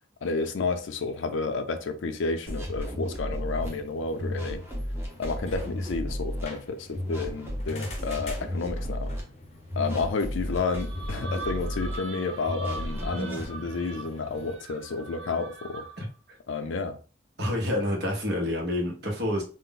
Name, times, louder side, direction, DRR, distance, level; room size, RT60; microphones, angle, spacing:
voice 1, 0.2-4.6 5.2-9.1 9.8-15.9 16.5-17.0, left 4 dB, 85° left, 0.4 m, -31 dB
sound 1, 2.5-3.7 4.2-6.4 6.9-9.2 9.7-12.0 12.5-13.5, equal, 10° right, 0.6 m, -33 dB
sound 2, 3.4-14.6, left 2 dB, 35° left, 0.6 m, -47 dB
sound 3, 10.4-16.1, right 3 dB, 75° right, 0.6 m, -42 dB
voice 2, 16.0-16.4 17.4-19.4, left 1 dB, 60° right, 0.9 m, -28 dB
2.4 x 2.0 x 3.8 m
head